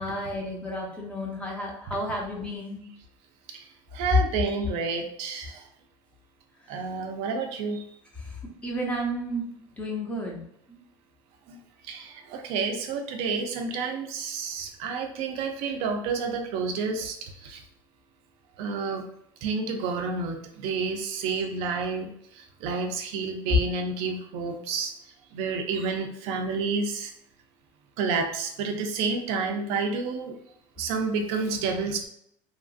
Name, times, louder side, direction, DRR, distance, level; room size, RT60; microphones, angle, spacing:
voice 1, 0.0-2.8 6.6-6.9 8.1-9.5 9.7-10.4 10.7-10.8, right 1 dB, 10° left, -1 dB, 0.7 m, -33 dB
voice 2, 3.9-5.7 6.7-7.9 11.5-11.6 11.8-17.6 18.6-19.0 19.4-24.9 25.3-27.1 28.0-30.3 30.8-32.1, right 4 dB, 65° right, 4 dB, 0.4 m, -30 dB
2.9 x 2.5 x 2.4 m, 0.73 s
cardioid pair, 145°, 11 cm